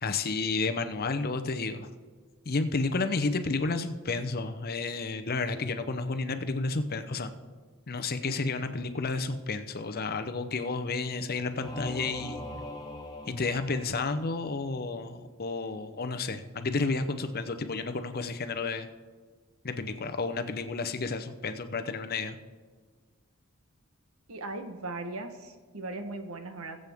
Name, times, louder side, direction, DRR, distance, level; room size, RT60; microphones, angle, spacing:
voice 1, 0.0-1.9 2.5-7.3 7.9-12.4 13.3-18.9 19.6-22.4, left 3 dB, 45° left, 8 dB, 0.7 m, -31 dB
Singing / Musical instrument, 11.6-14.5, left 1 dB, 20° left, 1.3 m, -41 dB
voice 2, 24.3-26.8, right 2 dB, 75° right, 7 dB, 1.1 m, -38 dB
21.5 x 7.7 x 3.5 m, 1.5 s
head